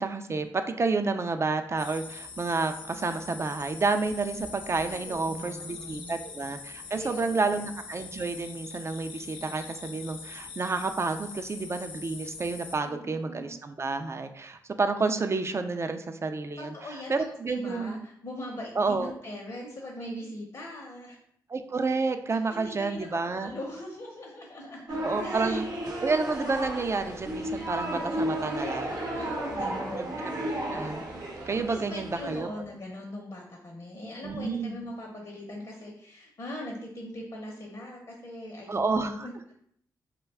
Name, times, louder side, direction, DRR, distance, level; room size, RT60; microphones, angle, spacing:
voice 1, 0.0-18.0 18.8-19.1 21.5-23.5 25.0-28.9 30.0-30.1 30.7-31.0 31.5-32.5 34.2-34.8 38.7-39.5, right 3 dB, 35° right, 8 dB, 0.3 m, -30 dB
sound 1, 1.8-12.8, left 5 dB, 80° left, 0.4 m, -43 dB
voice 2, 4.8-6.2 6.9-7.6 12.8-13.5 16.6-17.1 17.5-21.2 22.3-25.6 29.1-30.2 31.7-39.3, left 1 dB, 50° left, -1 dB, 0.7 m, -41 dB
sound 2, 24.9-32.4, right 1 dB, 55° right, 0.8 m, -33 dB
2.3 x 2.2 x 3.3 m, 0.68 s
supercardioid pair, 40°, 8 cm